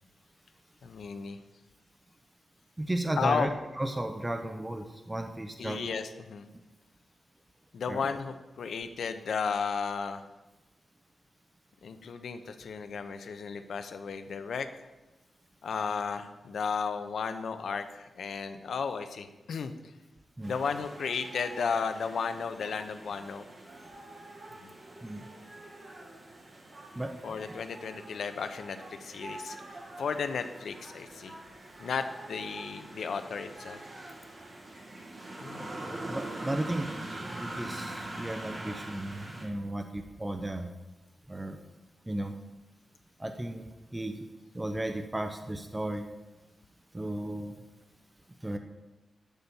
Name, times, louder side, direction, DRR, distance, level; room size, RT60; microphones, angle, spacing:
voice 1, 0.8-1.4 3.2-3.5 5.6-6.5 7.7-10.3 11.8-14.7 15.6-19.7 20.4-23.5 24.6-24.7 27.2-31.3 31.8-33.8 35.4-35.8, left 5 dB, 80° left, 9 dB, 0.8 m, -34 dB
voice 2, 2.8-3.5 3.8-5.9 7.9-8.0 20.4-20.6 25.0-25.2 26.9-27.1 36.1-36.9 37.2-40.7 41.3-41.6 42.1-42.4 43.2-44.3 44.5-46.0 46.9-47.5 48.4-48.6, right 1 dB, 15° right, 5 dB, 0.7 m, -34 dB
sound 1, 20.4-39.5, right 1 dB, 35° right, 2.0 m, -44 dB
12.0 x 4.2 x 7.0 m, 1.1 s
wide cardioid pair, 105°, 0 cm